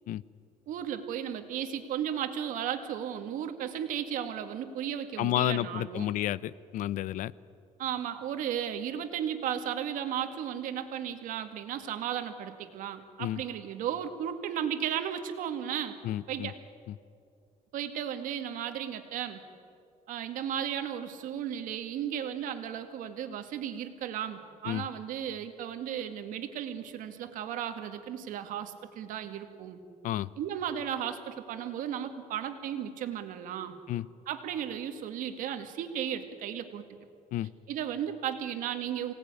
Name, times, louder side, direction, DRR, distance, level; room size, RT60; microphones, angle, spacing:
voice 1, 0.7-6.1 7.8-16.0 16.3-16.6 17.7-19.4 20.1-29.8 30.4-33.8 34.3-36.8 37.7-39.1, right 9 dB, 85° right, 7 dB, 2.1 m, -35 dB
voice 2, 5.2-7.3 13.2-13.4 16.0-16.5 24.6-24.8 30.0-30.3 33.9-34.1 37.3-37.5, left 14 dB, 75° left, 20 dB, 0.6 m, -31 dB
24.5 x 18.5 x 9.7 m, 2.4 s
cardioid pair, 155°, 13 cm